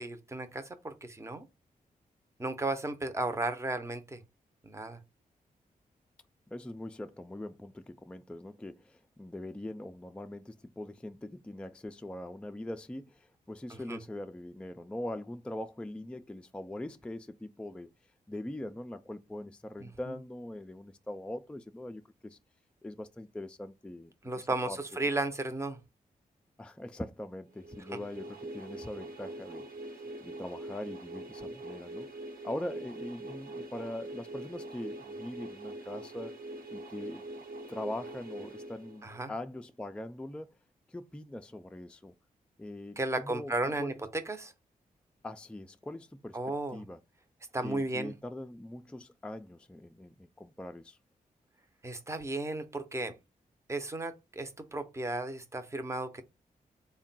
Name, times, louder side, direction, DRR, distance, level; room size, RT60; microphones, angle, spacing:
voice 1, 0.0-1.4 2.4-4.2 4.6-5.0 13.7-14.0 19.8-19.9 24.2-25.8 39.0-39.3 43.0-43.9 44.3-44.5 46.3-46.8 47.5-48.1 51.8-53.1 53.7-56.2, right 2 dB, 20° right, 0.7 m, -34 dB
voice 2, 6.5-17.9 18.3-22.4 22.8-24.8 26.6-32.1 32.4-36.3 36.7-37.2 37.7-40.5 40.9-42.1 42.6-44.0 45.2-46.4 46.7-47.0 47.6-51.0, left 1 dB, 5° left, 0.3 m, -42 dB
sound 1, 27.6-39.4, right 2 dB, 65° right, 1.1 m, -43 dB
3.6 x 2.2 x 4.0 m
cardioid pair, 60°, 15 cm